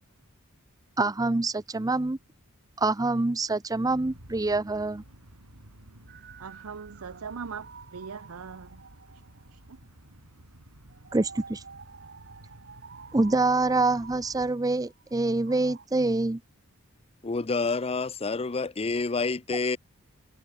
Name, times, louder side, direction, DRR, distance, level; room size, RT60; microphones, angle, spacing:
voice 1, 1.0-2.2 2.8-5.0 11.1-11.6 13.1-16.4, right 2 dB, 15° right, 0.5 m, -26 dB
sound 1, 3.8-14.5, right 1 dB, 85° right, 4.6 m, -52 dB
sound 2, 6.1-9.9 10.9-15.9, right 5 dB, 50° right, 6.5 m, -49 dB
voice 2, 6.4-8.8 9.5-9.8, right 6 dB, 70° right, 0.6 m, -40 dB
voice 3, 17.2-19.8, left 4 dB, 25° left, 0.6 m, -28 dB
head